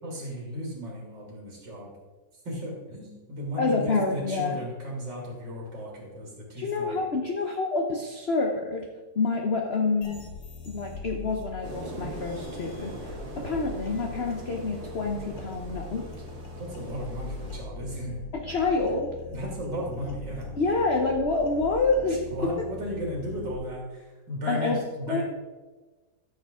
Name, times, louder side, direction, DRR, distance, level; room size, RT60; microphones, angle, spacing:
voice 1, 0.0-1.9 2.4-7.0 16.5-18.2 19.3-20.5 22.3-25.2, equal, 70° right, -2 dB, 3.0 m, -35 dB
voice 2, 3.6-4.6 6.6-8.8 9.1-10.2 10.7-16.1 18.3-19.1 20.5-22.3 24.5-24.8 25.1-25.2, left 3 dB, 45° left, 2 dB, 0.9 m, -27 dB
sound 1, 10.0-23.5, left 3 dB, 70° left, 2.2 m, -42 dB
sound 2, 11.6-17.6, right 2 dB, 90° right, 3.2 m, -42 dB
13.5 x 7.1 x 3.7 m, 1.2 s
omnidirectional pair, 2.0 m